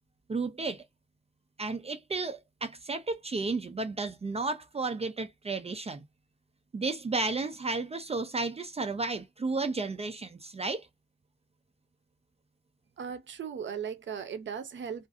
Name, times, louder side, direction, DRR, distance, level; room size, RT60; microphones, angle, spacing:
voice 1, 0.3-0.8 1.6-6.1 6.7-10.9, right 3 dB, 35° right, 0.4 m, -33 dB
voice 2, 13.0-15.1, right 7 dB, 90° right, 0.5 m, -37 dB
2.5 x 2.4 x 2.4 m
wide cardioid pair, 120°, 19 cm